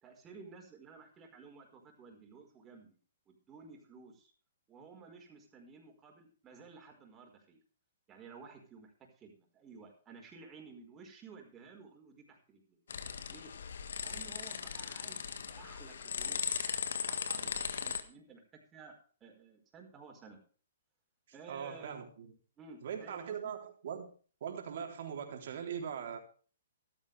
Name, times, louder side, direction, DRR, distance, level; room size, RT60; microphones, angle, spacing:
voice 1, 0.0-3.0 3.3-4.3 4.7-7.6 8.1-12.8 13.3-13.5 14.0-18.9 19.2-20.4 21.3-22.0 22.6-23.5, right 5 dB, 20° right, 4.9 m, -54 dB
sound 1, 12.9-18.0, left 6 dB, 75° left, 1.6 m, -38 dB
voice 2, 21.5-22.3 22.8-24.1 24.4-26.2, right 7 dB, 60° right, 3.7 m, -41 dB
15.0 x 13.0 x 3.5 m
hypercardioid pair, 140°, 0 cm